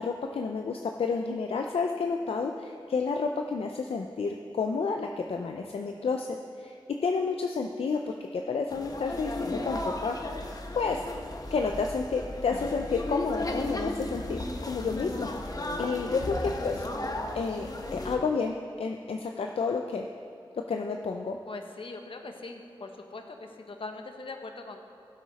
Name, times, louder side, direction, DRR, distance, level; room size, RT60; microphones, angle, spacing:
voice 1, 0.0-6.7 7.0-10.2 10.7-11.1 11.5-16.8 17.3-20.1 20.7-21.4, left 4 dB, 80° left, 3 dB, 0.5 m, -30 dB
sound 1, 8.7-18.2, left 1 dB, 40° left, 1.2 m, -35 dB
voice 2, 21.5-24.8, left 3 dB, 65° left, 4 dB, 1.1 m, -41 dB
16.5 x 8.1 x 4.1 m, 2.4 s
wide cardioid pair, 60°, 10 cm